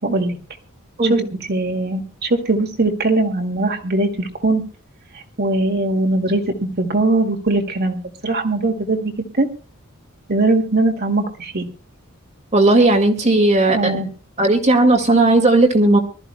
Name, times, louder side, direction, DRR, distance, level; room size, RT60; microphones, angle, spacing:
voice 1, 0.0-0.4 1.1-1.2 1.5-4.6 5.4-9.5 10.3-11.7 13.7-14.1, right 2 dB, 45° right, 4 dB, 2.1 m, -20 dB
voice 2, 12.5-14.1 14.4-16.0, right 2 dB, 30° right, 3 dB, 2.0 m, -15 dB
24.5 x 13.5 x 2.2 m, 0.35 s
head